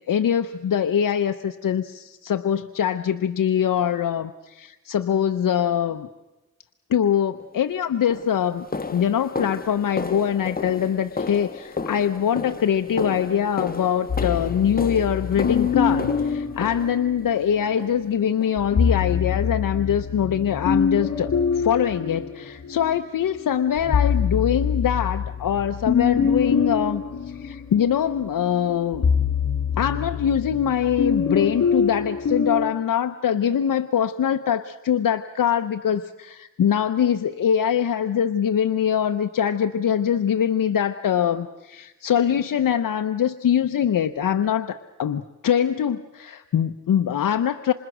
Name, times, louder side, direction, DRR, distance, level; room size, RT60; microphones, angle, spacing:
voice 1, 0.1-6.1 6.9-8.7 8.9-29.1 29.8-47.7, left 9 dB, 80° left, 8 dB, 0.8 m, -23 dB
sound 1, 7.4-7.6 8.1-17.3 17.8-18.1 18.4-18.6 19.0-19.2 19.6-19.7 20.2-20.3, left 4 dB, 30° left, 1.3 m, -33 dB
sound 2, 14.1-17.6 18.6-23.0 23.4-32.7, left 6 dB, 60° left, 3.1 m, -25 dB
28.5 x 26.5 x 6.2 m, 1.1 s
wide cardioid pair, 120°, 32 cm